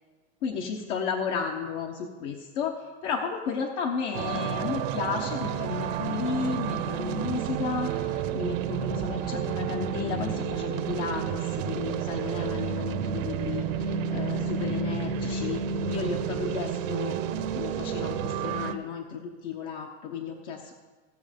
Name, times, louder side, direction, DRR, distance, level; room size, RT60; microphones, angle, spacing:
voice 1, 0.4-2.8 3.0-20.7, left 6 dB, 65° left, 2 dB, 1.2 m, -33 dB
sound 1, 4.1-18.7, right 7 dB, 80° right, 1.0 m, -30 dB
16.5 x 6.4 x 5.3 m, 1.3 s
supercardioid pair, 150°, 38 cm